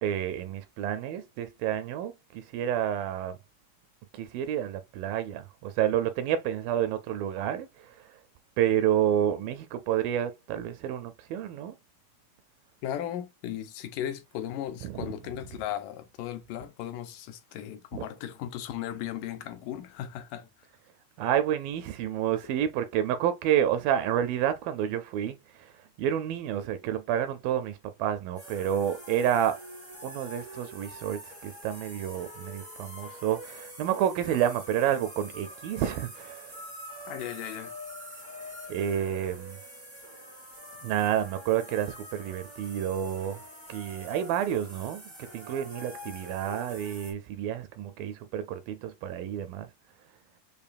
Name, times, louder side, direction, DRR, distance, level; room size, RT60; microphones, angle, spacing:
voice 1, 0.0-3.4 4.1-8.0 8.6-11.8 14.8-15.0 17.9-18.0 21.2-25.7 26.0-29.6 30.0-36.6 38.7-39.6 40.8-43.4 43.7-49.7, right 10 dB, 80° right, 2.2 m, -29 dB
voice 2, 12.8-20.5 37.1-37.7, left 11 dB, 80° left, 2.0 m, -36 dB
sound 1, 28.3-47.1, equal, 30° right, 0.5 m, -45 dB
6.8 x 2.7 x 2.5 m
omnidirectional pair, 4.3 m